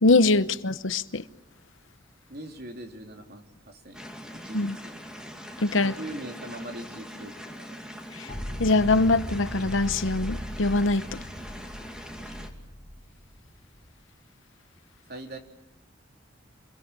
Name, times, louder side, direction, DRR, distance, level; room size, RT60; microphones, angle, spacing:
voice 1, 0.0-1.2 4.5-4.8 5.6-5.9 8.2-8.3 8.6-11.2, left 3 dB, 75° left, 1.0 m, -23 dB
voice 2, 2.3-4.1 4.3-4.9 5.8-7.8 12.2-12.5 15.1-15.4, right 1 dB, 50° right, 3.4 m, -41 dB
sound 1, 3.9-12.5, equal, 5° right, 2.4 m, -42 dB
sound 2, 8.3-14.0, equal, 35° left, 2.9 m, -38 dB
28.5 x 23.0 x 8.9 m
head